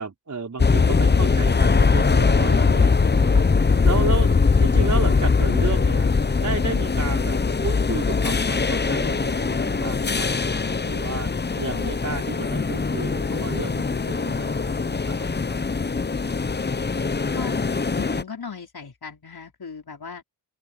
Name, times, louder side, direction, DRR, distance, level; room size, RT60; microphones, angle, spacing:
voice 1, 0.0-3.4 3.8-4.3 4.6-11.3 11.6-15.6, right 4 dB, 40° right, 4.6 m, -32 dB
sound 1, 0.6-18.2, left 4 dB, 25° left, 0.8 m, -21 dB
voice 2, 17.9-20.2, left 5 dB, 55° left, 5.1 m, -37 dB
open air
cardioid pair, 75°, 45 cm